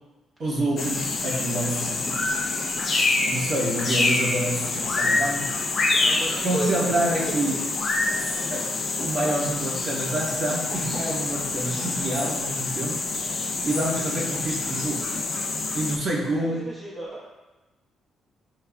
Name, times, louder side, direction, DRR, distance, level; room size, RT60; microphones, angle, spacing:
voice 1, 0.4-2.4 3.2-5.6 6.4-7.7 8.1-8.2 8.5-13.0 13.6-15.1 15.7-16.6, right 1 dB, 55° right, -6 dB, 0.9 m, -28 dB
sound 1, 0.8-16.0, left 3 dB, 50° left, 0.3 m, -27 dB
voice 2, 5.9-7.0 7.3-7.7 16.4-17.3, right 1 dB, 10° left, -5 dB, 0.9 m, -34 dB
4.8 x 2.1 x 2.3 m, 1.1 s
cardioid pair, 90°, 0 cm